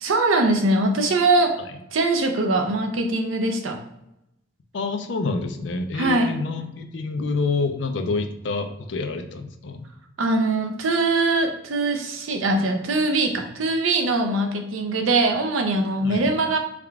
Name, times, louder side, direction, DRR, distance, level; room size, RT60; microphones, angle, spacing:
voice 1, 0.0-1.6 1.9-3.8 5.9-6.3 10.2-16.6, right 2 dB, 85° right, 4 dB, 0.6 m, -22 dB
voice 2, 4.7-9.9 16.0-16.2, left 3 dB, 60° left, 7 dB, 0.4 m, -27 dB
3.5 x 2.2 x 3.5 m, 0.85 s
head